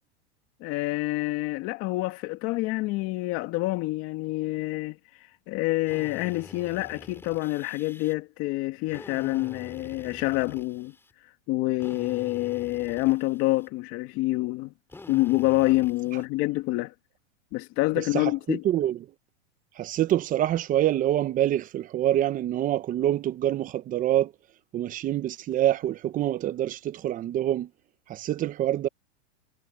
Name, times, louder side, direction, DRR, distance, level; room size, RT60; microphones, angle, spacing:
voice 1, 0.6-10.9 11.5-14.7 15.1-16.9 17.5-18.6, left 19 dB, 40° left, 2.2 m, -27 dB
Drill, 5.9-8.1 8.9-11.1 11.8-13.7 14.9-16.3, left 3 dB, 5° left, 3.3 m, -47 dB
voice 2, 18.0-19.0 19.8-24.3 24.7-27.7 28.1-28.9, right 12 dB, 25° right, 0.9 m, -26 dB
supercardioid pair, 145°, 35 cm